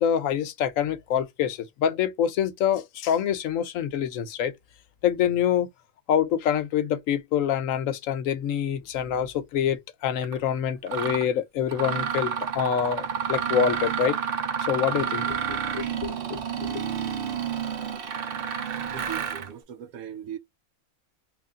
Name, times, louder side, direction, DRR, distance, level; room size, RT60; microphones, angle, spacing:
voice 1, 0.0-4.5 5.0-5.7 6.1-14.2 14.6-16.8, left 9 dB, 70° left, 0.9 m, -26 dB
Mechanisms, 10.2-10.4 10.9-11.3 11.7-19.5, right 8 dB, 55° right, 0.7 m, -30 dB
voice 2, 18.9-20.4, right 9 dB, 80° right, 1.1 m, -38 dB
3.3 x 2.5 x 3.6 m
omnidirectional pair, 1.5 m